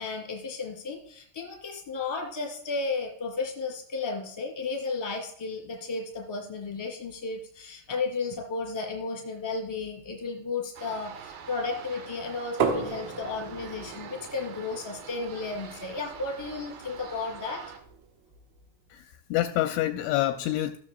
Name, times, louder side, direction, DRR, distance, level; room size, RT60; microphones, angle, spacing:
voice 1, 0.0-17.6, left 4 dB, 10° left, -2 dB, 1.8 m, -33 dB
sound 1, 10.8-17.8, right 7 dB, 65° right, 2.9 m, -45 dB
sound 2, 12.6-18.3, right 7 dB, 90° right, 3.9 m, -36 dB
voice 2, 18.9-20.8, left 14 dB, 85° left, 7 dB, 2.8 m, -27 dB
16.5 x 7.1 x 2.3 m, 0.63 s
omnidirectional pair, 5.7 m